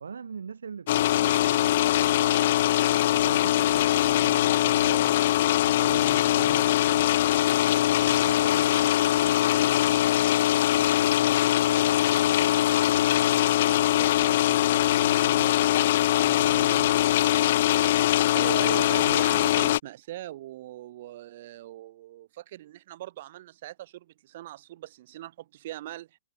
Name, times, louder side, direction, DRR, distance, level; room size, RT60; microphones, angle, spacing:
voice 1, 0.0-2.6 3.1-5.1 5.6-7.2 8.0-11.3 11.6-15.7 16.2-17.0 18.6-19.2, right 6 dB, 90° right, 0.5 m, -42 dB
sound 1, 0.9-19.8, left 13 dB, 55° left, 0.3 m, -22 dB
voice 2, 18.3-26.2, right 14 dB, 55° right, 2.4 m, -40 dB
hypercardioid pair, 135°, 0 cm